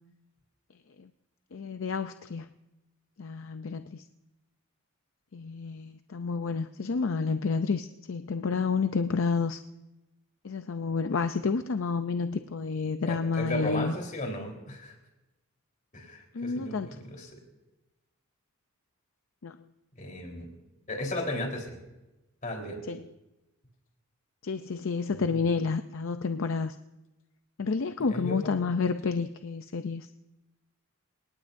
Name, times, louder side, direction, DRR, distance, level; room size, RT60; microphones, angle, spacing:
voice 1, 1.5-2.5 3.2-4.0 5.3-9.6 10.4-13.9 16.3-16.9 19.4-19.6 22.9-23.0 24.4-26.8 27.6-30.1, left 4 dB, 70° left, 9 dB, 0.5 m, -30 dB
voice 2, 13.1-15.0 15.9-17.4 20.0-20.5 20.9-21.7 22.4-22.8 25.1-25.5 28.0-28.6, left 1 dB, 40° left, 1 dB, 3.9 m, -35 dB
28.5 x 18.5 x 2.7 m, 1.0 s
head